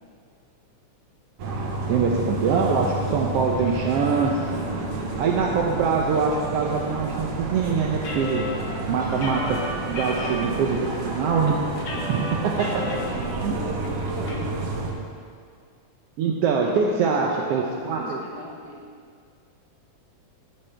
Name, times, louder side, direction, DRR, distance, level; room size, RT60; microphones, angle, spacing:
sound 1, 1.4-14.9, right 2 dB, 60° right, 1.9 m, -30 dB
voice 1, 1.9-4.5 5.2-8.5 8.9-9.6 9.9-11.6 12.1-12.8 13.4-13.6 16.2-18.2, right 5 dB, 75° right, 0 dB, 1.4 m, -24 dB
sound 2, 8.0-10.5 11.0-11.1 11.4-13.1 13.4-13.5 13.8-14.3, left 3 dB, 55° left, 1.2 m, -34 dB
voice 2, 12.8-14.9 16.6-18.9, right 1 dB, 40° right, -2 dB, 1.7 m, -37 dB
14.0 x 10.0 x 3.4 m, 2.1 s
omnidirectional pair, 3.5 m